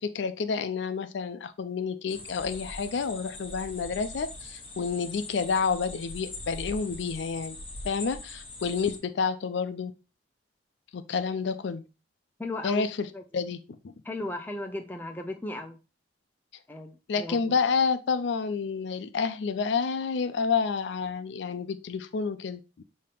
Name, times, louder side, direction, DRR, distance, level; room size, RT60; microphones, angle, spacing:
voice 1, 0.0-7.6 7.8-9.9 10.9-11.8 12.6-13.1 13.3-13.6 13.8-13.9 17.1-22.8, left 5 dB, 75° left, 0.4 m, -29 dB
sound 1, 2.1-9.0, left 2 dB, 30° left, 1.0 m, -42 dB
voice 2, 12.4-12.9 13.1-13.4 14.0-15.8 16.7-17.6, left 1 dB, 10° left, 0.5 m, -36 dB
5.4 x 2.8 x 3.4 m
head